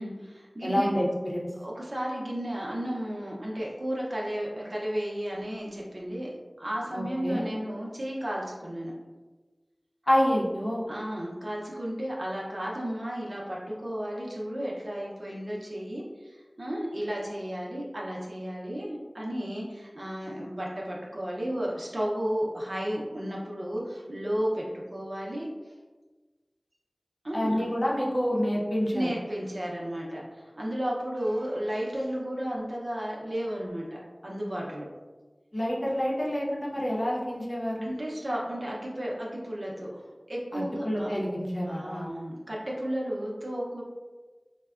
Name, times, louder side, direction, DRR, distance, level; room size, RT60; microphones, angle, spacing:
voice 1, 0.0-0.9 1.6-6.3 6.6-9.0 10.9-25.5 27.2-27.6 28.9-34.9 37.8-41.1 41.7-43.8, equal, 60° right, -4 dB, 0.6 m, -33 dB
voice 2, 0.6-1.5 6.9-7.4 10.1-10.9 27.3-29.1 35.5-38.0 40.5-42.1, equal, 50° left, -4 dB, 0.7 m, -28 dB
3.4 x 2.1 x 2.3 m, 1.3 s
wide cardioid pair, 45°, 0 cm